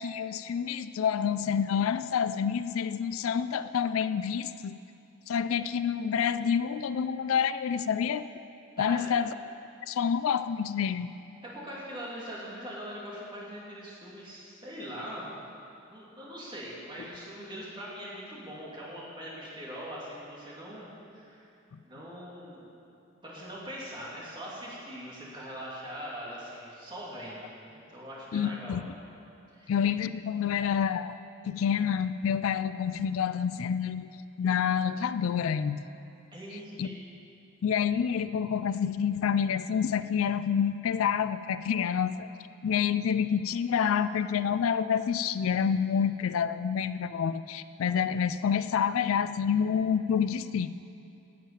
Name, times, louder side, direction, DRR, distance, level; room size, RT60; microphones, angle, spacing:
voice 1, 0.0-4.8 5.3-8.2 8.8-9.3 9.9-11.1 21.7-21.8 28.3-28.8 29.7-31.2 31.5-34.1 34.4-35.8 36.8-36.9 37.6-42.3 42.6-50.7, left 7 dB, 75° left, 13 dB, 0.4 m, -28 dB
voice 2, 8.8-9.2 11.4-15.3 15.9-21.5 21.8-22.7 23.2-28.8 29.5-29.7 36.3-37.0, equal, 20° right, -6 dB, 2.8 m, -42 dB
12.0 x 7.5 x 8.9 m, 2.7 s
head